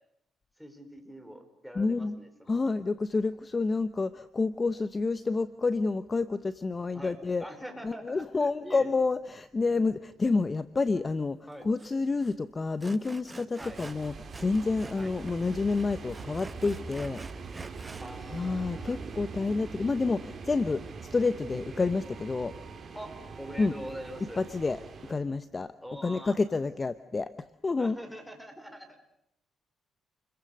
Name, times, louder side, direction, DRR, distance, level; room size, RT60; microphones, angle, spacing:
voice 1, 0.6-2.7 6.9-8.9 11.5-11.7 13.6-13.8 14.9-15.1 18.0-19.0 22.9-24.4 25.8-26.4 27.8-29.1, equal, ahead, 9 dB, 4.9 m, -44 dB
voice 2, 1.8-2.2 2.5-7.5 7.8-11.4 11.6-14.1 14.4-17.2 18.3-20.8 21.1-22.5 23.6-23.7 24.4-24.8 25.1-25.7 26.0-27.3 27.6-28.0, left 3 dB, 30° left, 13 dB, 0.9 m, -29 dB
Sawing, 11.8-11.9 12.2-12.4 12.8-15.0 15.3-18.1, right 3 dB, 20° right, 1.2 m, -47 dB
sound 1, 13.6-25.1, right 5 dB, 40° right, 3.8 m, -43 dB
29.5 x 22.0 x 6.6 m, 0.75 s
cardioid pair, 90°, 0 cm